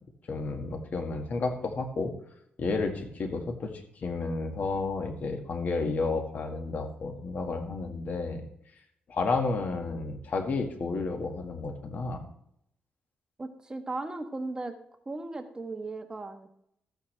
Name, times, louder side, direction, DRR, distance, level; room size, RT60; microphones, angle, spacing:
voice 1, 0.3-2.1 2.6-8.4 9.1-12.2, left 3 dB, 55° left, 5 dB, 1.7 m, -31 dB
voice 2, 13.4-14.7 15.1-16.5, right 2 dB, 25° right, 6 dB, 1.2 m, -36 dB
13.5 x 9.3 x 3.3 m, 0.72 s
cardioid pair, 105°, 3 cm